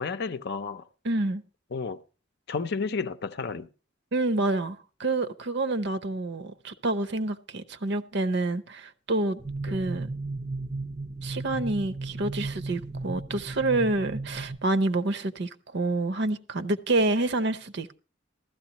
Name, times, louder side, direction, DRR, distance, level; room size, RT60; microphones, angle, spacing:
voice 1, 0.0-0.9 1.7-2.0 2.5-3.7 9.7-9.8, left 4 dB, 55° left, 0.6 m, -31 dB
voice 2, 1.0-1.4 4.1-10.1 11.2-18.0, right 2 dB, 60° right, 0.7 m, -28 dB
sound 1, 9.4-14.6, right 2 dB, 20° right, 0.5 m, -35 dB
15.0 x 13.0 x 2.9 m
head